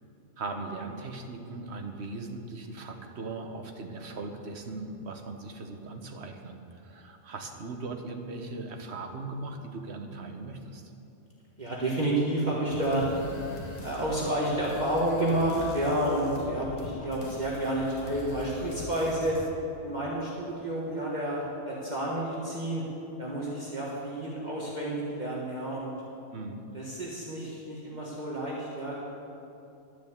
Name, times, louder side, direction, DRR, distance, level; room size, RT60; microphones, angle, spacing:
voice 1, 0.4-10.9 26.3-26.6, right 3 dB, 70° right, 4 dB, 1.3 m, -39 dB
voice 2, 11.6-13.1 13.8-19.4 19.8-22.8 23.2-25.9 26.7-29.0, right 1 dB, 40° right, -5 dB, 1.6 m, -30 dB
sound 1, 12.7-19.5, left 2 dB, 35° left, 1.1 m, -43 dB
12.0 x 6.6 x 8.1 m, 2.7 s
omnidirectional pair, 1.2 m